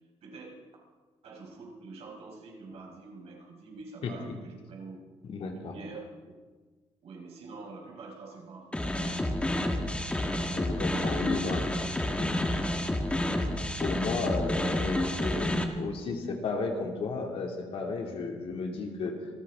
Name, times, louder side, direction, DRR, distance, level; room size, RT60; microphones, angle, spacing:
voice 1, 0.2-0.6 1.2-5.0 5.5-6.4 7.0-9.3 11.1-11.6, right 3 dB, 65° right, -1 dB, 5.1 m, -46 dB
voice 2, 5.2-5.7 10.6-11.6 12.2-12.3 13.8-19.1, left 4 dB, 55° left, 2 dB, 2.7 m, -33 dB
sound 1, 8.7-15.6, left 1 dB, 10° left, 1.4 m, -29 dB
26.5 x 14.0 x 3.8 m, 1.4 s
cardioid pair, 140°, 11 cm